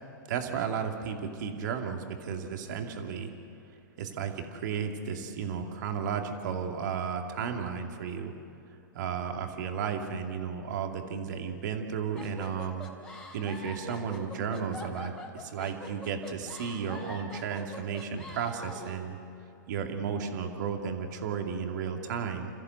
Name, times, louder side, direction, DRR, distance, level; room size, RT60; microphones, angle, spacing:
voice 1, 0.2-3.3 4.0-8.3 8.9-12.9 13.3-19.2 19.7-22.5, right 6 dB, 60° right, 3 dB, 2.5 m, -33 dB
sound 1, 12.2-19.0, left 1 dB, 10° left, 3.7 m, -44 dB
29.0 x 15.0 x 7.9 m, 2.7 s
hypercardioid pair, 115°, 11 cm